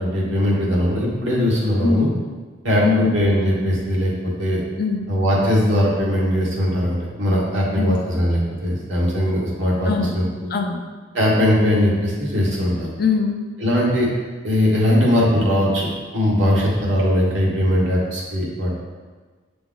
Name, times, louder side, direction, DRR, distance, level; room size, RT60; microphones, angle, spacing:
voice 1, 0.0-2.1 2.6-4.1 4.4-4.6 5.1-10.3 11.1-12.9 13.6-14.1 14.4-18.7, equal, 65° right, -5 dB, 1.5 m, -20 dB
voice 2, 2.8-3.1 4.8-5.1 7.7-8.0 9.9-10.1 10.5-10.9 13.0-13.4, left 5 dB, 45° left, 4 dB, 0.5 m, -21 dB
7.2 x 3.4 x 3.8 m, 1.4 s
head